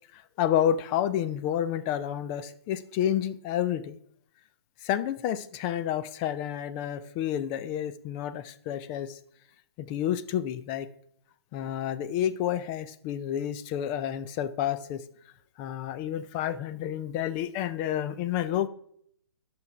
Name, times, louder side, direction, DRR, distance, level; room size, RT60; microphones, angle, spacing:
voice 1, 0.1-4.0 4.8-9.2 9.8-10.9 11.5-15.0 15.6-18.7, left 10 dB, 20° left, 13 dB, 0.4 m, -30 dB
10.5 x 6.0 x 5.0 m, 0.68 s
hypercardioid pair, 140°, 14 cm